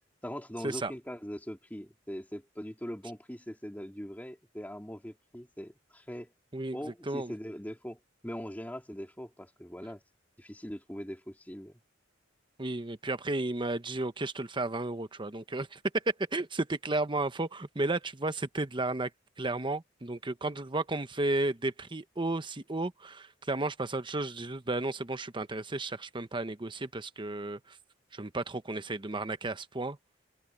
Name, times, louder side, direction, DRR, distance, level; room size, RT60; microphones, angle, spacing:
voice 1, 0.2-6.3 6.7-10.0 10.4-11.8, equal, 10° left, 2.9 m, -41 dB
voice 2, 6.5-7.3 12.6-19.1 19.4-27.8 28.1-30.0, right 2 dB, 25° right, 1.0 m, -33 dB
open air
head